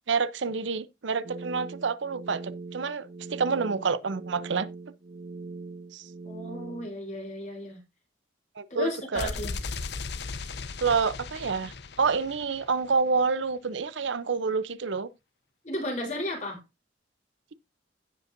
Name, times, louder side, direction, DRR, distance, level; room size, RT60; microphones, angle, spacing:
voice 1, 0.1-4.7 5.9-6.1 8.6-9.3 10.8-15.1, right 5 dB, 75° right, 0.6 m, -28 dB
sound 1, 1.2-6.9, right 3 dB, 40° right, 0.4 m, -41 dB
voice 2, 6.2-7.8 8.7-9.5 15.6-16.6, left 1 dB, 40° left, 3.8 m, -34 dB
sound 2, 9.1-13.0, left 4 dB, 60° left, 0.8 m, -37 dB
16.5 x 5.5 x 2.6 m
head